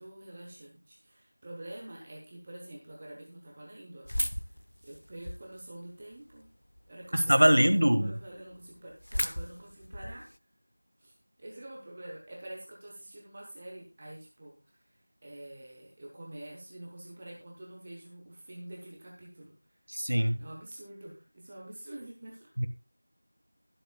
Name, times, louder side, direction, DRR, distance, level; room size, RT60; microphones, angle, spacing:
voice 1, 0.0-4.1 4.8-6.5 6.9-10.3 11.0-14.9 15.2-19.6 20.4-22.5, right 1 dB, 10° right, -2 dB, 1.1 m, -47 dB
sound 1, 4.0-5.6 6.1-6.8 7.3-7.4 7.6-7.7 8.0-8.1 8.3-10.4, equal, 45° left, 0.7 m, -35 dB
voice 2, 7.1-8.1 19.9-20.4 22.6-22.7, equal, 55° right, 10 dB, 1.6 m, -23 dB
22.5 x 7.7 x 2.3 m, 0.28 s
figure-of-eight pair, 180°, 0 cm